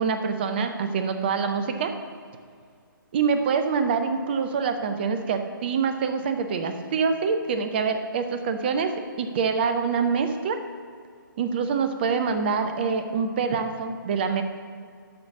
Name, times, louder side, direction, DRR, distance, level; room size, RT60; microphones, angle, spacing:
voice 1, 0.0-1.9 3.1-8.9 9.2-10.6 11.4-14.4, right 5 dB, 30° right, 8 dB, 0.6 m, -25 dB
12.0 x 4.1 x 6.8 m, 2.2 s
figure-of-eight pair, 140°, 11 cm